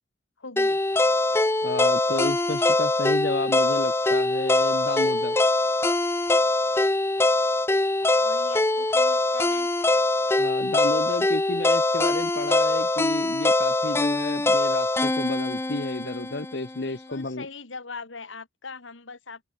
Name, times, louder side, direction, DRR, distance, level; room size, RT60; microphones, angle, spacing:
voice 1, 0.4-0.8 8.2-9.7 16.8-19.5, left 4 dB, 85° left, 2.2 m, -40 dB
sound 1, 0.6-16.7, left 2 dB, 15° left, 0.4 m, -23 dB
voice 2, 1.6-5.4 10.4-17.5, left 2 dB, 60° left, 1.1 m, -31 dB
open air
head